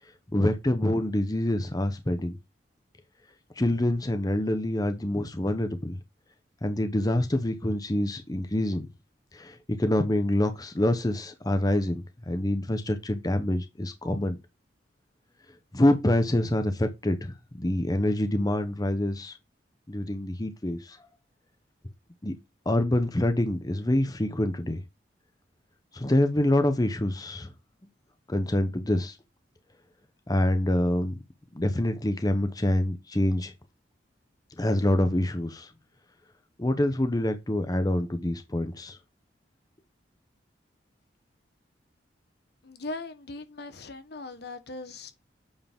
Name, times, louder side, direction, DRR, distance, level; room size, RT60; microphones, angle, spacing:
voice 1, 0.3-2.3 3.6-6.0 6.6-8.9 9.3-14.4 15.7-19.4 19.9-21.0 22.2-22.3 22.7-24.8 25.9-27.5 28.3-29.2 30.3-31.1 31.5-33.5 34.6-35.7 36.6-39.0, left 1 dB, 20° left, 0.8 m, -26 dB
voice 2, 42.6-45.2, left 2 dB, 60° left, 1.2 m, -39 dB
8.7 x 4.8 x 3.6 m
head